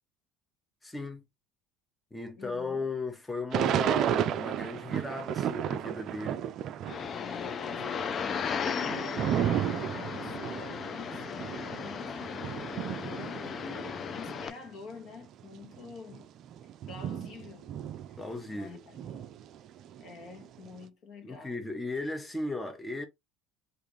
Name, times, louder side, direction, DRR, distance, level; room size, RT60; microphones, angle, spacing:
voice 1, 0.8-1.2 2.1-6.5 18.2-18.8 21.2-23.1, left 3 dB, 10° left, 0.7 m, -36 dB
voice 2, 2.4-2.9 7.1-12.5 13.0-16.3 16.9-17.7 18.5-19.2 20.0-21.6, left 4 dB, 55° left, 1.1 m, -48 dB
Thunder / Rain, 3.5-7.1 7.4-14.5 15.1-15.2 15.4-18.6 18.9-20.7, right 10 dB, 55° right, 0.3 m, -33 dB
sound 1, 6.9-14.5, left 6 dB, 40° left, 0.4 m, -36 dB
3.5 x 2.6 x 3.0 m
hypercardioid pair, 80°, 0 cm